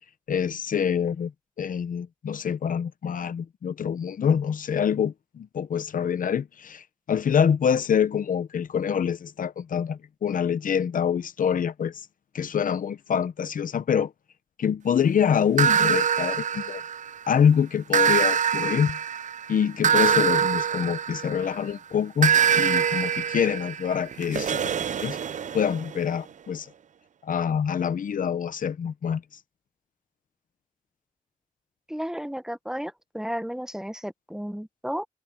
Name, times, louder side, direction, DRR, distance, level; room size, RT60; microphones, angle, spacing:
voice 1, 0.3-1.3 1.6-12.1 12.3-14.1 14.6-16.8 17.3-19.0 19.5-25.2 25.5-26.7 27.2-29.2, left 7 dB, 85° left, 0.8 m, -25 dB
sound 1, 15.6-17.3 17.9-21.6 22.2-25.9, right 7 dB, 65° right, 0.5 m, -24 dB
voice 2, 31.9-35.0, equal, 5° right, 0.9 m, -33 dB
wide cardioid pair, 90°, 14 cm